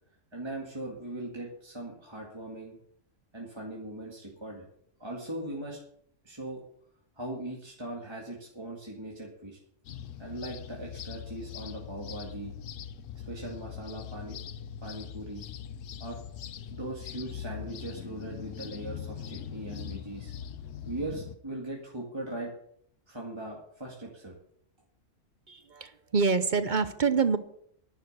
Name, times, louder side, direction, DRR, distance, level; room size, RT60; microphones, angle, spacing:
voice 1, 0.3-2.8 3.3-4.7 5.0-5.8 6.2-6.6 7.2-9.6 10.2-12.5 13.2-14.4 14.8-15.5 16.0-16.2 16.7-20.3 20.9-22.5 23.1-24.3, right 1 dB, 20° right, -3 dB, 2.2 m, -39 dB
sound 1, 9.9-21.4, left 9 dB, 80° left, 1.1 m, -41 dB
voice 2, 25.5-27.4, right 5 dB, 45° right, 12 dB, 0.8 m, -26 dB
11.0 x 10.0 x 6.7 m, 0.67 s
omnidirectional pair, 1.3 m